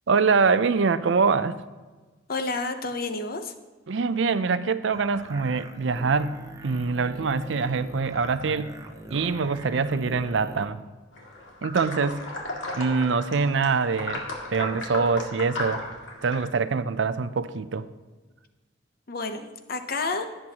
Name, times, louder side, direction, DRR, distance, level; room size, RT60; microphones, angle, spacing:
voice 1, 0.1-1.6 3.9-8.8 9.1-10.8 11.6-12.2 12.7-15.8 16.2-17.8, right 4 dB, 70° right, 13 dB, 0.5 m, -24 dB
voice 2, 2.3-3.5 19.1-20.3, left 3 dB, 50° left, 8 dB, 0.8 m, -30 dB
sound 1, 4.9-10.7, right 1 dB, 20° right, 0.7 m, -42 dB
sound 2, 11.2-16.4, left 2 dB, 80° left, 2.2 m, -35 dB
17.0 x 7.6 x 2.9 m, 1.3 s
head